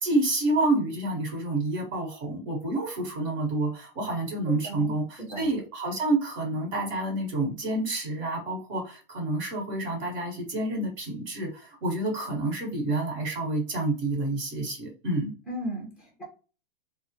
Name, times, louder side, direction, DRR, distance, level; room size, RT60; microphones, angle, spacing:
voice 1, 0.0-15.3, right 2 dB, 45° right, 0 dB, 1.2 m, -28 dB
voice 2, 4.5-4.9 5.2-5.5 15.5-16.2, right 1 dB, 5° right, -1 dB, 0.6 m, -36 dB
3.3 x 2.1 x 2.7 m, 0.36 s
hypercardioid pair, 160°, 30 cm